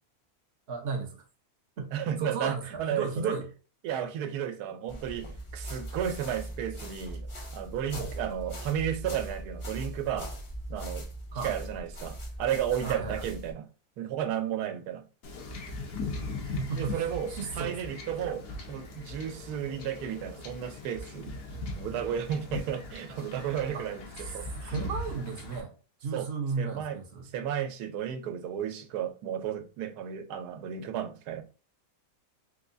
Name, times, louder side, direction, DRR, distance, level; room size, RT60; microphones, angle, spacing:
voice 1, 0.7-1.2 1.8-1.9 2.2-3.5 7.9-8.1 11.3-11.5 12.8-13.2 16.1-17.0 17.3-17.9 23.7-23.9 24.2-24.3 24.7-25.7 26.0-27.2, right 4 dB, 60° right, 0.7 m, -34 dB
voice 2, 1.9-3.3 3.8-7.3 7.5-10.3 10.7-11.1 11.4-13.7 14.0-15.1 16.8-21.3 21.7-24.1 24.3-24.7 26.1-26.3 26.6-27.0 27.3-31.4, right 9 dB, 85° right, 1.1 m, -33 dB
sound 1, 4.9-13.5, right 1 dB, 30° left, 0.5 m, -40 dB
Wind / Ocean / Boat Water vehicle, 15.2-25.6, left 2 dB, 65° left, 1.1 m, -39 dB
3.5 x 3.0 x 2.5 m
omnidirectional pair, 1.6 m